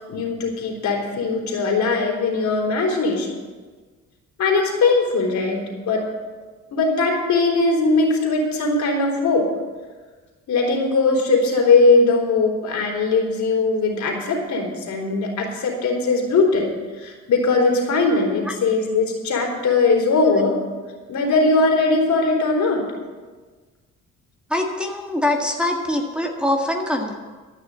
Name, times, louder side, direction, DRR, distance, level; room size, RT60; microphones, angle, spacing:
voice 1, 0.1-3.4 4.4-6.0 6.7-9.4 10.5-16.7 17.0-20.6 21.1-22.8, left 3 dB, 70° left, 0 dB, 3.7 m, -20 dB
voice 2, 24.5-27.1, left 1 dB, 5° right, 0 dB, 1.7 m, -23 dB
13.5 x 6.1 x 9.8 m, 1.4 s
cardioid pair, 90°, 30 cm